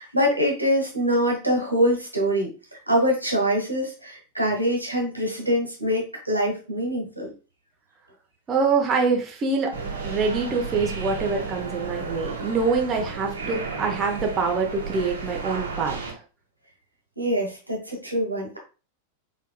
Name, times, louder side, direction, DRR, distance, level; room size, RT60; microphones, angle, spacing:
voice 1, 0.0-7.3 17.2-18.6, equal, 85° right, 0 dB, 1.3 m, -24 dB
voice 2, 8.5-9.7 10.0-16.2, right 4 dB, 25° right, 1 dB, 0.9 m, -25 dB
sound 1, 9.7-16.1, right 4 dB, 70° right, 1.1 m, -33 dB
4.5 x 3.4 x 2.2 m, 0.33 s
figure-of-eight pair, 90°, 0 cm